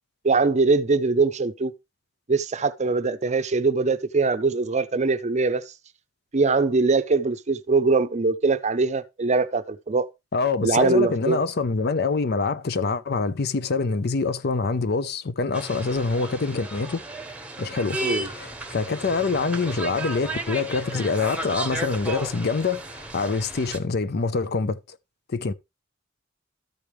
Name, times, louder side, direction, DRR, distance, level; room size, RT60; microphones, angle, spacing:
voice 1, 0.2-1.7 2.3-5.6 6.3-10.1 10.6-11.4 18.0-18.3, right 4 dB, 35° right, 0.6 m, -22 dB
voice 2, 10.3-17.0 17.6-18.0 18.4-22.8 23.1-24.8 25.3-25.5, left 4 dB, 55° left, 0.6 m, -25 dB
sound 1, 15.5-23.8, right 1 dB, 5° right, 1.0 m, -34 dB
13.5 x 5.1 x 3.1 m
head